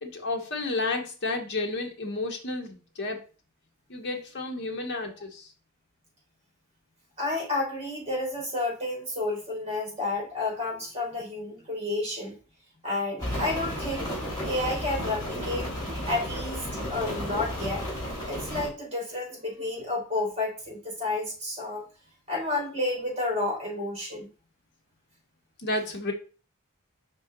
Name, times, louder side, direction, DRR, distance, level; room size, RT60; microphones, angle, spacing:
voice 1, 0.0-3.2 3.9-5.5 25.6-26.1, left 2 dB, 55° left, 3 dB, 1.3 m, -31 dB
voice 2, 7.2-12.3 12.8-14.1 14.4-15.7 16.0-17.9 18.3-21.8 22.3-24.3, left 2 dB, 30° right, -2 dB, 3.6 m, -31 dB
Rain, 13.2-18.7, equal, 20° left, 3.2 m, -33 dB
5.4 x 4.6 x 3.9 m, 0.34 s
head